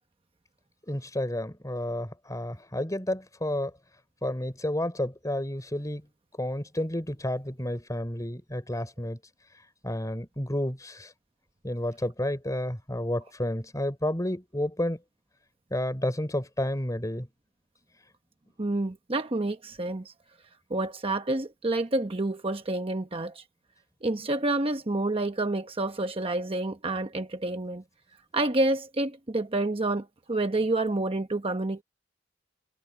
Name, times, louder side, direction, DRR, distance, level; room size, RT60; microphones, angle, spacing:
voice 1, 0.9-3.7 4.2-6.0 6.4-9.2 9.8-11.1 11.6-15.0 15.7-17.3, left 1 dB, 15° left, 4.0 m, -31 dB
voice 2, 18.6-20.1 20.7-23.4 24.0-27.8 28.3-31.8, right 2 dB, 30° right, 1.0 m, -28 dB
head